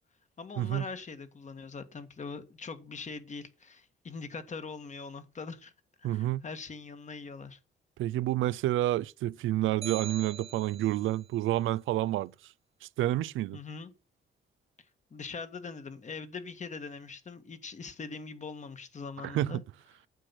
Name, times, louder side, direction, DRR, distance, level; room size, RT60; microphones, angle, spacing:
voice 1, 0.4-5.7 6.0-7.6 13.5-13.9 15.1-19.6, left 4 dB, 35° left, 1.7 m, -42 dB
voice 2, 6.0-6.4 8.0-12.5 12.8-13.6 19.2-19.6, right 14 dB, 80° right, 0.5 m, -29 dB
sound 1, 9.8-11.2, right 8 dB, 30° right, 0.8 m, -42 dB
9.1 x 7.8 x 5.9 m
cardioid pair, 90°, 20 cm